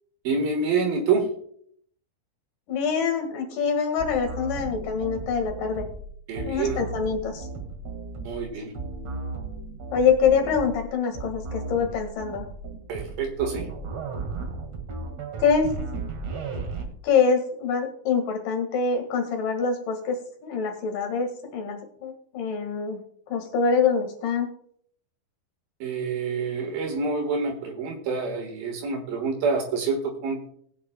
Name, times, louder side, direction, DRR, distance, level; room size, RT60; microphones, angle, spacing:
voice 1, 0.2-1.3 6.3-6.8 8.2-8.7 12.9-13.7 25.8-30.5, right 4 dB, 75° right, 1 dB, 3.3 m, -27 dB
voice 2, 2.7-5.9 6.4-7.5 9.9-12.5 15.4-15.7 17.0-20.1 20.4-23.0 23.3-24.5, left 6 dB, 65° left, 4 dB, 3.3 m, -25 dB
sound 1, 4.0-16.8, right 4 dB, 50° right, 2.7 m, -35 dB
20.0 x 8.5 x 2.2 m, 0.62 s
omnidirectional pair, 4.2 m